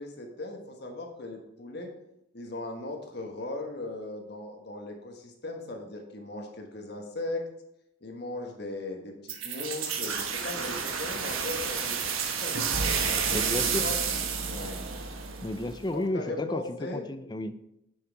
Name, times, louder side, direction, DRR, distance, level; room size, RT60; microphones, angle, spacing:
voice 1, 0.0-1.9 2.3-7.4 8.0-12.6 13.0-14.0 14.5-14.8 15.9-17.0, left 2 dB, 55° left, 2 dB, 1.4 m, -38 dB
sound 1, 9.3-15.9, right 6 dB, 85° right, 1.3 m, -30 dB
voice 2, 13.3-13.9 15.4-16.6 16.9-17.5, left 1 dB, 20° left, 11 dB, 0.5 m, -32 dB
9.8 x 6.4 x 4.6 m, 0.84 s
head